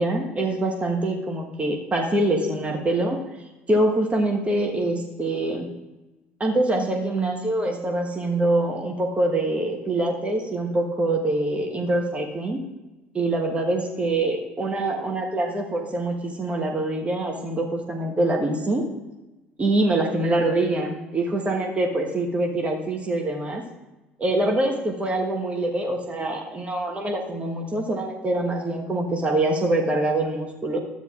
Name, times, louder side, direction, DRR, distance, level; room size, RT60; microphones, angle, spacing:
voice 1, 0.0-3.2 3.7-5.7 6.4-12.6 13.1-18.8 19.6-23.6 24.2-30.8, right 2 dB, 20° right, 1 dB, 1.2 m, -24 dB
13.0 x 8.6 x 2.4 m, 1.1 s
figure-of-eight pair, 60°, 6 cm